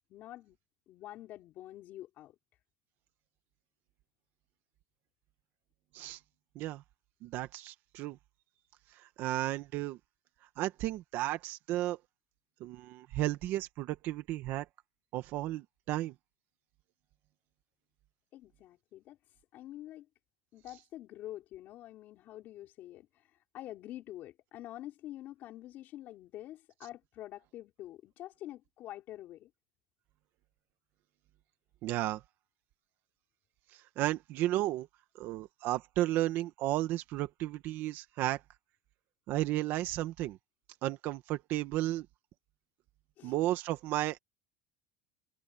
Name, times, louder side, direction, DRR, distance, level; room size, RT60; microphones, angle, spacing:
voice 1, 0.1-0.6 0.9-2.3 18.3-19.2 19.5-20.1 20.5-29.5 43.2-43.3, left 14 dB, 40° left, 4.7 m, -47 dB
voice 2, 7.2-8.2 8.9-10.0 10.6-12.0 12.6-14.7 15.1-16.1 31.8-32.2 33.7-34.9 35.2-38.4 39.3-40.4 40.8-42.1 43.2-44.2, right 15 dB, 45° right, 1.4 m, -33 dB
cardioid pair, 155°, 5 cm